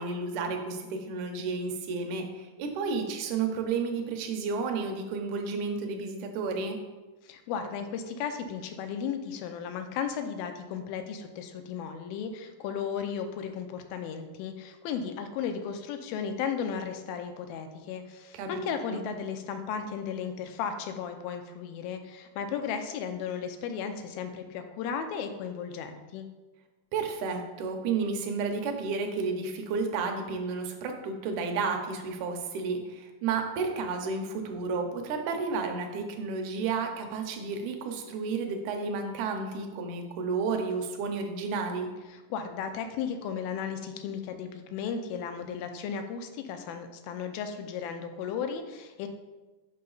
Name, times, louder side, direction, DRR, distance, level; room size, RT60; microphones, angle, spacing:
voice 1, 0.0-6.8 18.3-19.0 26.9-41.9, right 4 dB, 75° right, 4 dB, 1.8 m, -32 dB
voice 2, 7.2-26.3 42.3-49.1, left 7 dB, 85° left, 7 dB, 2.4 m, -35 dB
5.8 x 5.4 x 3.9 m, 1.2 s
omnidirectional pair, 4.2 m